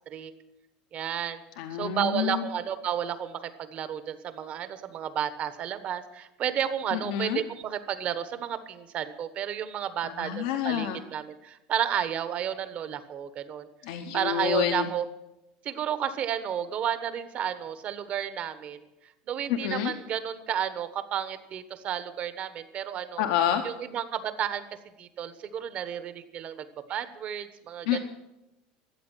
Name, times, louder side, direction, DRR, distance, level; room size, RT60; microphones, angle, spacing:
voice 1, 0.9-1.4 1.7-13.7 14.1-15.0 15.6-18.8 19.3-23.2 23.6-24.6 25.0-28.0, right 9 dB, 40° right, 12 dB, 1.1 m, -32 dB
voice 2, 1.6-2.4 6.9-7.4 10.0-11.0 13.8-14.9 19.5-19.9 23.2-23.6 27.9-28.0, left 10 dB, 80° left, 5 dB, 1.0 m, -28 dB
13.5 x 8.1 x 9.0 m, 0.94 s
supercardioid pair, 135°, 3 cm